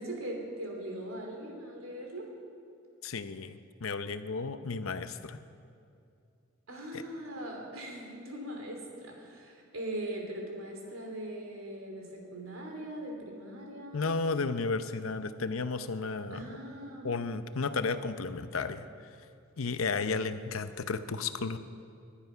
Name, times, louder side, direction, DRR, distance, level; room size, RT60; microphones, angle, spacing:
voice 1, 0.0-2.3 6.7-14.0 16.3-17.2, right 1 dB, 90° right, 1 dB, 3.1 m, -40 dB
voice 2, 3.0-5.4 6.9-7.0 13.9-16.5 17.0-18.9 19.6-21.6, left 4 dB, 90° left, 11 dB, 0.8 m, -33 dB
20.0 x 10.5 x 5.7 m, 2.5 s
head